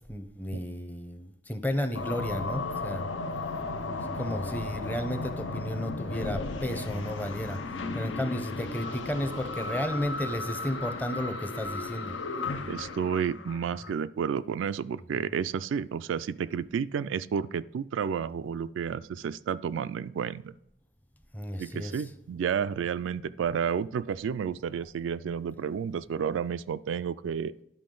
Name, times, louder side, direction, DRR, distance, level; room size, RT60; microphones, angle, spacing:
voice 1, 0.1-3.1 4.2-7.6 7.9-12.2 15.2-15.3 21.3-22.0, left 1 dB, 10° left, 8 dB, 0.6 m, -33 dB
sound 1, 1.9-13.9, left 3 dB, 85° left, 0.7 m, -35 dB
voice 2, 12.7-20.5 21.6-27.5, right 7 dB, 85° right, 15 dB, 0.3 m, -31 dB
10.5 x 5.8 x 3.8 m, 0.82 s
head